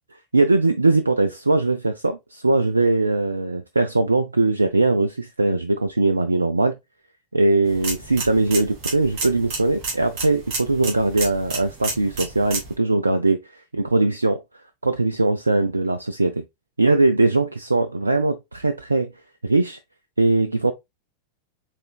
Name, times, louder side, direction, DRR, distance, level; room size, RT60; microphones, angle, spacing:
voice 1, 0.3-6.8 7.3-14.4 14.8-16.4 16.8-19.1 19.4-19.8 20.2-20.7, right 2 dB, 80° right, 0.3 m, -20 dB
sound 1, 7.6-12.7, right 3 dB, 45° right, 1.9 m, -32 dB
4.8 x 3.4 x 2.2 m
figure-of-eight pair, 90°, 0 cm